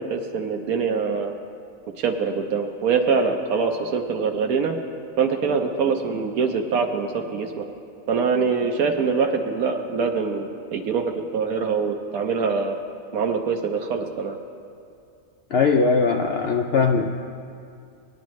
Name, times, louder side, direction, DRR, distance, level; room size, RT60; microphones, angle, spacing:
voice 1, 0.0-1.3 2.0-4.7 5.2-7.7 8.1-12.8 13.1-14.4, right 5 dB, 85° right, 2 dB, 1.2 m, -24 dB
voice 2, 15.5-17.1, left 4 dB, 65° left, 3 dB, 0.6 m, -20 dB
19.0 x 10.0 x 3.1 m, 2.4 s
omnidirectional pair, 1.5 m